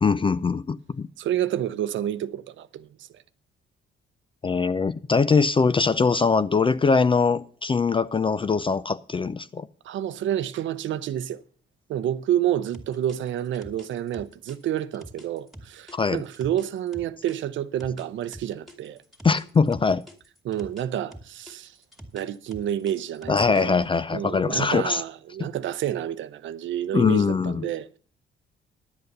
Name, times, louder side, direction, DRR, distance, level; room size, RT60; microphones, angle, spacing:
voice 1, 0.0-1.1 4.4-9.7 15.9-16.2 19.2-20.0 23.3-25.0 25.4-25.5 26.9-27.7, left 5 dB, 25° left, 0.5 m, -22 dB
voice 2, 1.2-2.9 9.8-11.4 11.9-19.0 20.4-21.7 22.1-23.8 24.1-28.0, right 11 dB, 70° right, 0.7 m, -29 dB
sound 1, 12.7-17.4 17.8-20.8 21.1-23.8, equal, ahead, 2.3 m, -45 dB
11.0 x 8.0 x 6.7 m
cardioid pair, 90°, 20 cm